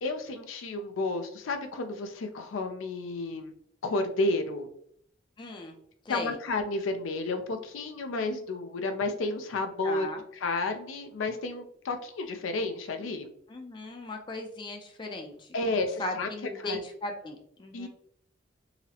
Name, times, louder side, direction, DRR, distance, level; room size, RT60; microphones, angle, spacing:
voice 1, 0.0-3.5 3.8-4.7 6.1-10.1 10.4-13.3 15.5-16.3 16.6-16.8 17.7-17.9, left 2 dB, 90° left, 7 dB, 0.4 m, -31 dB
voice 2, 5.4-5.8 6.1-6.4 9.8-10.2 13.5-17.9, left 2 dB, 25° left, 3 dB, 0.4 m, -38 dB
3.9 x 2.0 x 2.7 m, 0.67 s
head